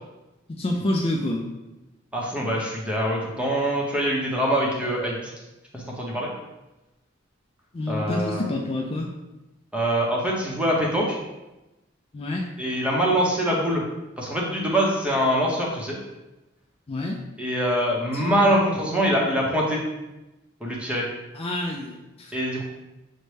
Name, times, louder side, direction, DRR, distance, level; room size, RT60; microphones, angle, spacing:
voice 1, 0.5-1.5 7.7-9.1 12.1-12.5 16.9-17.2 18.1-18.4 21.3-22.3, left 1 dB, 30° left, -1 dB, 0.4 m, -28 dB
voice 2, 2.1-5.3 5.7-6.3 7.9-8.4 9.7-11.2 12.6-13.8 14.2-16.0 17.4-19.8 20.6-21.1 22.3-22.6, equal, 5° right, -3 dB, 0.8 m, -24 dB
6.3 x 2.2 x 3.2 m, 1.0 s
head